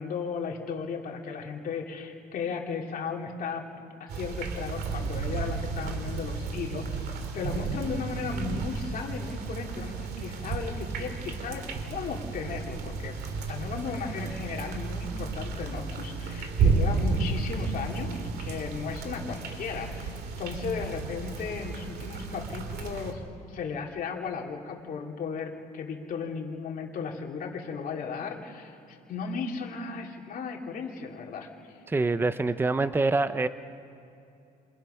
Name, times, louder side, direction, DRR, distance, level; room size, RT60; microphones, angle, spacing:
voice 1, 0.0-3.7 4.0-23.2 23.5-31.8, left 5 dB, 55° left, 0 dB, 2.8 m, -35 dB
sound 1, 4.1-23.1, right 4 dB, 70° right, 2.5 m, -32 dB
voice 2, 31.9-33.5, right 3 dB, 15° right, 12 dB, 0.7 m, -25 dB
27.5 x 24.5 x 5.8 m, 2.7 s
cardioid pair, 110°, 17 cm